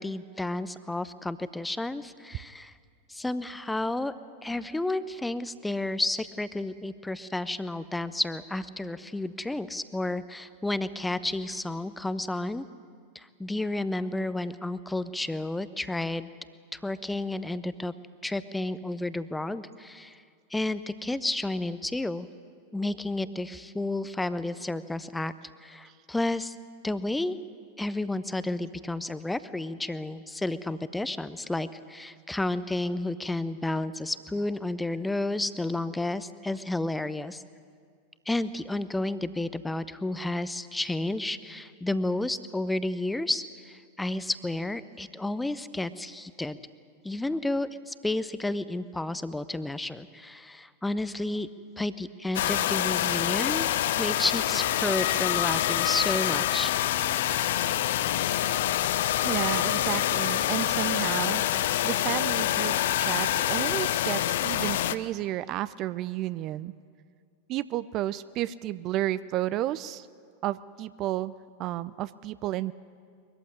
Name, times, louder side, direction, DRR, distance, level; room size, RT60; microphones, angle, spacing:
voice 1, 0.0-2.7 3.1-4.1 4.4-12.6 13.1-16.3 16.7-17.9 18.2-20.2 20.5-22.3 22.7-25.3 25.6-26.6 26.8-27.4 27.8-37.4 38.3-46.6 47.0-51.5 51.8-53.7 54.0-56.7, left 2 dB, 5° left, 15 dB, 0.8 m, -31 dB
sound 1, 52.3-64.9, left 12 dB, 55° left, 0.7 m, -26 dB
voice 2, 59.2-66.7 67.5-70.1 70.4-71.3 71.6-72.7, right 14 dB, 35° right, 16 dB, 0.5 m, -32 dB
22.5 x 15.0 x 9.8 m, 2.1 s
figure-of-eight pair, 90°, 0 cm